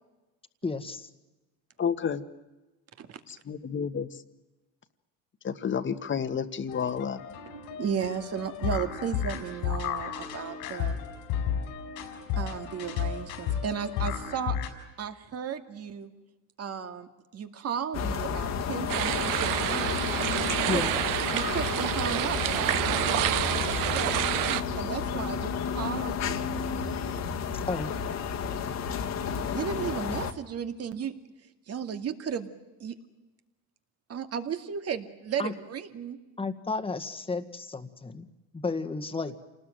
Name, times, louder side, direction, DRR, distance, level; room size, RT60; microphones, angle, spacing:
voice 1, 0.6-1.1 20.7-20.9 27.5-28.0 35.4-35.5 36.4-38.3 38.5-39.4, left 3 dB, 15° left, 8 dB, 1.8 m, -32 dB
voice 2, 1.8-2.2 3.3-4.1 5.4-7.2, left 7 dB, 35° left, 10 dB, 1.7 m, -30 dB
sound 1, 6.7-14.7, left 8 dB, 85° left, 4.7 m, -33 dB
voice 3, 7.8-11.0 12.3-14.6 15.0-16.1 16.6-20.0 20.4-20.8 21.3-24.2 24.7-26.4 29.5-31.1 31.7-32.5 32.8-32.9 34.1-36.2, right 7 dB, 45° right, 8 dB, 2.4 m, -34 dB
sound 2, 17.9-30.3, left 6 dB, 55° left, 2.0 m, -31 dB
sound 3, 18.9-24.6, right 13 dB, 75° right, 1.2 m, -28 dB
28.0 x 19.5 x 9.2 m, 1.1 s
cardioid pair, 100°, 33 cm